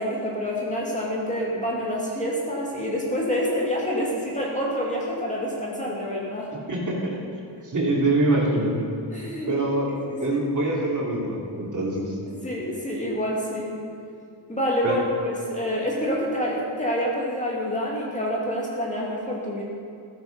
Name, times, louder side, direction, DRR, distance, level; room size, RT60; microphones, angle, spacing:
voice 1, 0.0-6.5 9.1-9.5 10.1-10.4 12.3-13.8 14.5-19.6, equal, 15° left, -4 dB, 2.4 m, -27 dB
voice 2, 6.7-7.2 7.6-8.8 9.5-9.9 10.2-12.1 14.8-14.9, right 2 dB, 35° right, -3 dB, 3.0 m, -24 dB
15.5 x 12.5 x 5.3 m, 2.6 s
wide cardioid pair, 150°, 49 cm